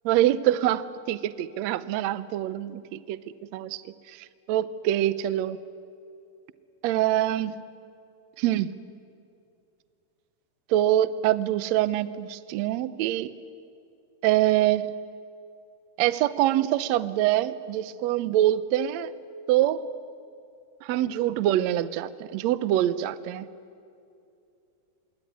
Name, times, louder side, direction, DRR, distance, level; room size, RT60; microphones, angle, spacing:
voice 1, 0.0-3.2 3.5-3.8 4.5-5.6 6.8-7.6 8.4-8.7 10.7-13.3 14.2-14.9 16.0-19.1 19.5-19.8 20.8-23.5, right 13 dB, 80° right, 15 dB, 1.5 m, -24 dB
26.5 x 22.5 x 9.6 m, 2.5 s
omnidirectional pair, 4.1 m